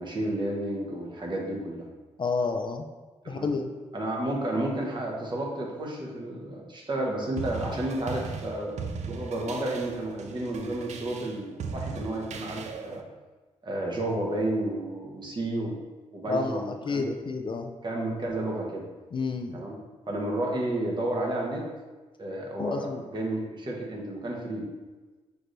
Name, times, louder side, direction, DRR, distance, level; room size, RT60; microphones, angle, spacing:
voice 1, 0.0-1.9 3.2-3.5 3.9-8.8 9.0-13.0 13.6-15.7 16.1-17.1 17.8-18.8 19.5-19.7 20.1-21.7 22.2-24.7, right 1 dB, 40° right, -2 dB, 1.1 m, -31 dB
voice 2, 2.2-2.9 3.3-3.7 16.3-17.7 19.1-19.6 22.6-23.0, left 4 dB, 40° left, 4 dB, 0.4 m, -30 dB
sound 1, 7.4-13.0, right 4 dB, 70° right, 0.4 m, -38 dB
5.9 x 3.2 x 2.6 m, 1.3 s
cardioid pair, 70°, 12 cm